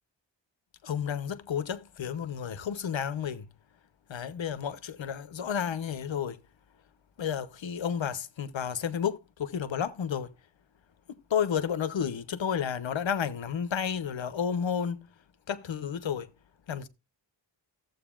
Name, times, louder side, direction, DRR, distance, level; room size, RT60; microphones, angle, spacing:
voice 1, 0.8-3.5 4.1-6.4 7.2-10.3 11.1-15.1 15.5-16.3 16.7-16.9, left 8 dB, 80° left, 0.9 m, -31 dB
14.0 x 7.9 x 2.4 m
cardioid pair, 60°, 44 cm